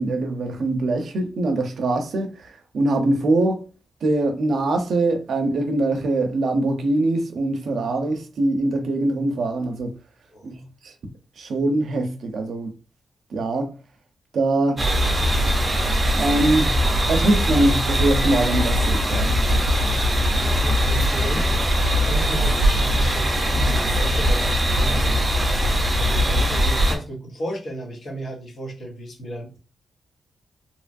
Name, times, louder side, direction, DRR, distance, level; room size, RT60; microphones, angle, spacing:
voice 1, 0.0-2.3 2.7-3.6 4.0-9.9 10.4-10.9 11.4-12.7 13.3-13.7 14.3-14.9 16.1-19.4, right 2 dB, 65° right, 0.5 m, -23 dB
sound 1, 14.8-27.0, equal, 20° right, 0.6 m, -21 dB
voice 2, 19.9-25.5 26.0-29.6, right 1 dB, 50° left, 0.9 m, -34 dB
2.8 x 2.3 x 2.5 m
wide cardioid pair, 165°, 0 cm